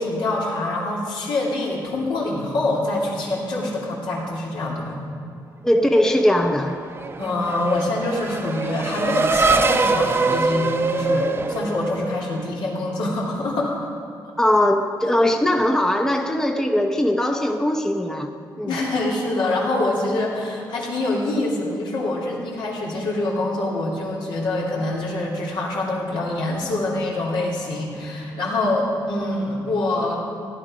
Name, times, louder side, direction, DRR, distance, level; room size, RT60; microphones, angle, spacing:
voice 1, 0.0-5.0 7.2-13.8 18.7-30.2, left 2 dB, 85° left, -4 dB, 3.0 m, -25 dB
voice 2, 5.6-6.8 14.4-18.3 18.6-18.8, left 1 dB, 5° left, 4 dB, 0.7 m, -20 dB
Race car auto racing / Accelerating revving vroom, 6.4-12.5, right 3 dB, 30° right, 0.7 m, -23 dB
15.5 x 10.5 x 5.1 m, 2.4 s
cardioid pair, 120°, 8 cm